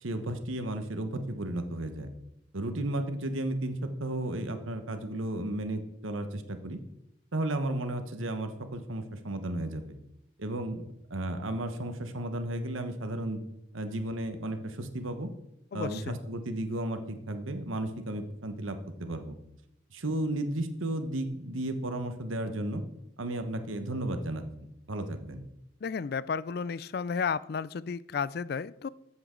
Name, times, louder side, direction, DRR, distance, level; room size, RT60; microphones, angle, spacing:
voice 1, 0.0-2.1 2.5-6.8 7.3-10.0 10.4-10.8 11.1-13.4 13.7-15.3 15.7-19.4 19.9-22.8 23.2-24.4 24.9-25.4, right 1 dB, 90° right, 8 dB, 1.2 m, -33 dB
voice 2, 15.7-16.2 25.8-28.9, left 5 dB, 50° left, 19 dB, 0.3 m, -33 dB
14.0 x 7.9 x 3.8 m, 0.83 s
head